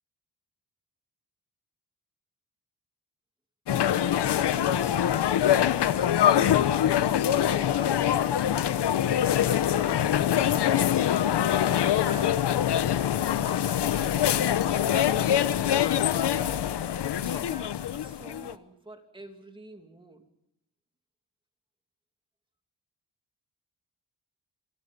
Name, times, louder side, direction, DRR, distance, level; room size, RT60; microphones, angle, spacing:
sound 1, 3.7-18.5, left 10 dB, 85° left, 1.0 m, -24 dB
voice 1, 4.5-6.1 6.4-8.1 9.1-10.4 11.5-12.5 13.4-15.8 16.1-16.7 17.2-20.3, right 1 dB, 10° right, 4 dB, 2.7 m, -46 dB
28.5 x 23.0 x 5.4 m, 0.83 s
wide cardioid pair, 150°, 40 cm